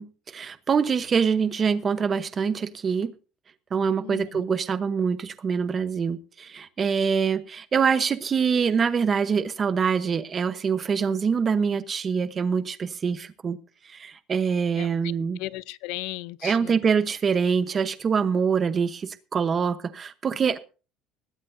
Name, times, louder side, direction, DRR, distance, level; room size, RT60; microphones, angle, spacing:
voice 1, 0.0-3.1 3.7-13.6 13.8-15.4 16.4-20.6, right 6 dB, 20° right, 1.0 m, -25 dB
voice 2, 4.0-4.4 14.7-15.1 15.4-16.8, left 19 dB, 75° left, 0.6 m, -36 dB
18.5 x 16.5 x 2.7 m
cardioid pair, 175°, 0 cm